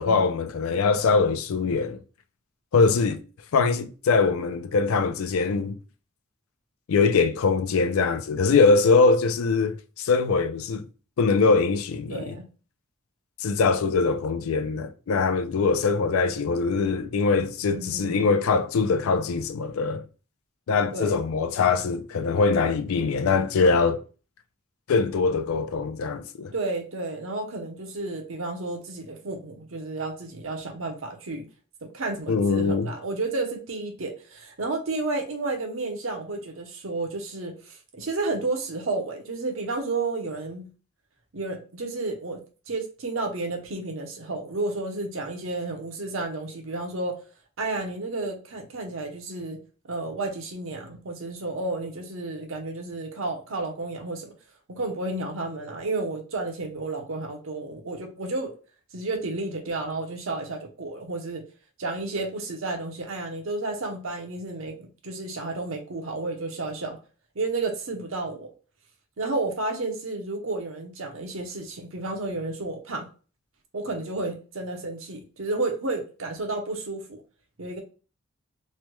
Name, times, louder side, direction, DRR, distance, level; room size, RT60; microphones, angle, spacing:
voice 1, 0.0-2.0 2.7-3.2 3.5-5.8 6.9-10.9 11.2-12.3 13.4-20.0 20.7-24.0 24.9-26.5 32.3-32.9, left 4 dB, 90° left, 0.4 m, -22 dB
voice 2, 12.1-12.4 17.7-18.3 20.9-21.2 26.5-31.5 31.8-40.7 41.3-47.2 47.6-49.6 49.9-54.3 54.7-58.5 58.9-61.4 61.8-67.0 67.4-68.5 69.2-73.1 73.7-77.2 77.6-77.8, right 2 dB, 75° right, 0.7 m, -31 dB
3.2 x 2.2 x 3.0 m
head